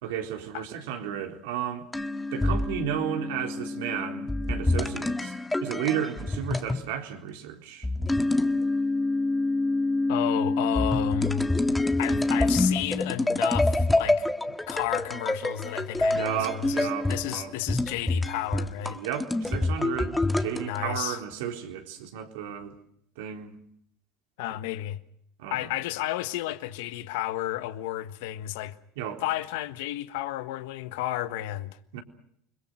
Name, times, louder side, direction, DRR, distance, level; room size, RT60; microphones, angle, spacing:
voice 1, 0.0-1.8 2.3-5.3 5.6-7.9 16.1-17.5 18.9-22.7 23.2-23.6 25.4-25.6 29.0-29.2 31.9-32.0, right 9 dB, 80° right, 4.0 m, -33 dB
sound 1, 1.9-6.9 7.8-20.8, left 2 dB, 10° left, 1.7 m, -27 dB
voice 2, 10.1-11.5 12.0-14.2 14.7-19.0 20.6-21.2 24.4-25.0 25.5-28.8 29.2-31.8, left 14 dB, 80° left, 1.5 m, -32 dB
29.0 x 22.0 x 6.3 m
supercardioid pair, 95°, 0 cm